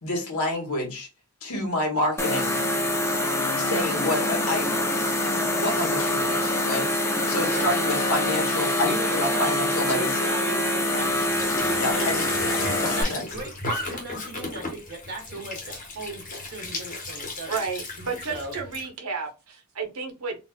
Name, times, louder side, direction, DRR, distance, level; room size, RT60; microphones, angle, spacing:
voice 1, 0.0-1.1 1.4-2.6 3.6-4.7 5.6-10.3 11.8-12.2 13.0-13.2, left 1 dB, 90° left, 1.3 m, -28 dB
sound 1, 2.2-13.0, left 1 dB, 10° left, 0.6 m, -25 dB
voice 2, 8.5-12.1 12.5-17.6 18.3-18.5, right 2 dB, 50° right, 1.3 m, -37 dB
Squeak / Sink (filling or washing) / Trickle dribble, 11.0-18.9, left 2 dB, 35° left, 1.0 m, -35 dB
voice 3, 17.5-20.4, right 5 dB, 80° right, 1.0 m, -32 dB
4.0 x 2.5 x 2.2 m
head